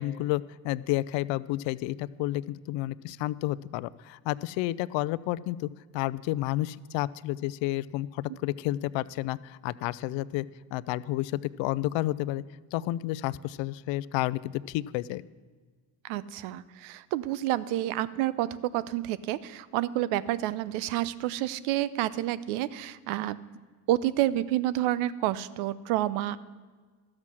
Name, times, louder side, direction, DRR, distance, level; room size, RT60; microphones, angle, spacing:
voice 1, 0.0-10.5 10.7-12.4 12.7-15.2, left 16 dB, 65° left, 19 dB, 0.5 m, -31 dB
voice 2, 16.0-23.4 23.9-26.4, right 14 dB, 75° right, 17 dB, 0.7 m, -29 dB
13.0 x 7.4 x 6.2 m, 1.5 s
supercardioid pair, 80°, 49 cm